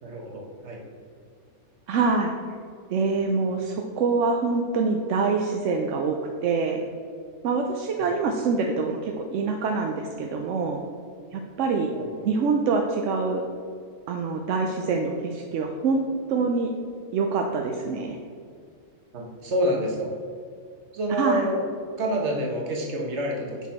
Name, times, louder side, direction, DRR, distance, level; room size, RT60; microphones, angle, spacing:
voice 1, 0.0-0.8 8.0-8.1 11.9-12.3 19.1-20.1 20.9-21.6 22.0-23.6, right 1 dB, 50° right, -1 dB, 1.4 m, -28 dB
voice 2, 1.9-2.3 2.9-6.2 6.4-6.8 7.4-10.8 11.3-11.9 12.2-13.4 14.1-16.0 16.3-16.7 17.1-18.2 21.2-21.5, right 4 dB, 65° right, 2 dB, 0.8 m, -25 dB
6.1 x 5.8 x 4.2 m, 2.2 s
omnidirectional pair, 1.6 m